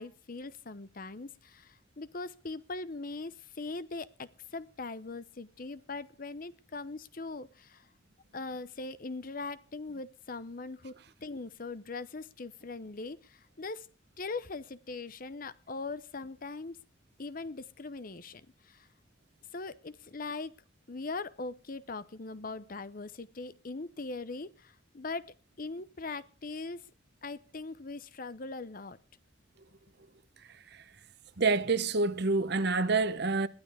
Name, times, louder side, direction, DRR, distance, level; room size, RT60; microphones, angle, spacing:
voice 1, 0.0-7.9 8.3-10.9 11.2-13.9 14.2-16.8 17.2-18.4 18.7-18.9 19.5-20.6 20.9-26.8 27.2-29.0, left 3 dB, 45° left, 0.8 m, -41 dB
voice 2, 31.4-33.5, right 3 dB, 55° right, 0.9 m, -27 dB
21.0 x 13.0 x 3.5 m
head